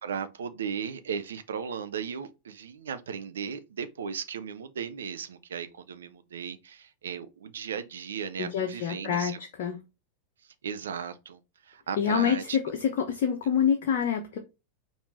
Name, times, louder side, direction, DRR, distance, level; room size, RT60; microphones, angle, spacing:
voice 1, 0.0-9.4 10.6-12.6, right 7 dB, 65° right, 0.5 m, -36 dB
voice 2, 8.4-9.8 12.0-14.4, left 8 dB, 50° left, 0.7 m, -27 dB
5.0 x 2.6 x 3.1 m
figure-of-eight pair, 90°, 0 cm